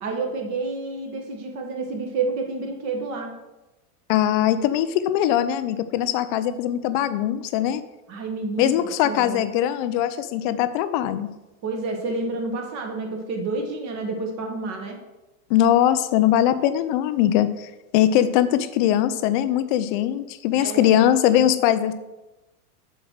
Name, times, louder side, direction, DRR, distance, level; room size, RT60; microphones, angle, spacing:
voice 1, 0.0-3.4 8.1-8.7 9.0-9.4 11.6-15.0 20.6-20.9, right 3 dB, 35° right, 2 dB, 1.4 m, -29 dB
voice 2, 4.1-7.8 8.6-11.3 15.5-21.9, left 11 dB, 35° left, 13 dB, 0.4 m, -21 dB
7.3 x 4.5 x 6.4 m, 1.0 s
supercardioid pair, 145°, 45 cm